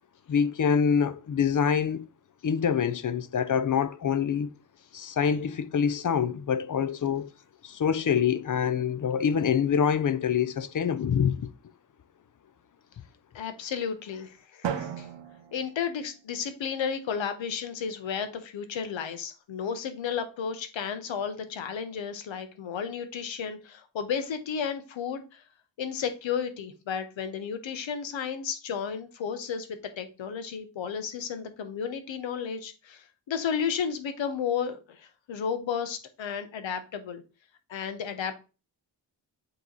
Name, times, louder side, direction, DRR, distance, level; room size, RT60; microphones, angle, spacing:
voice 1, 0.3-2.1 2.4-4.5 4.9-7.3 7.6-11.5, left 7 dB, 45° left, 0.6 m, -25 dB
voice 2, 13.3-15.1 15.5-25.4 25.8-37.2 37.7-38.3, left 7 dB, 85° left, 1.0 m, -33 dB
Drum, 14.6-16.6, right 8 dB, 75° right, 0.8 m, -36 dB
7.7 x 3.0 x 4.0 m
cardioid pair, 80°, 44 cm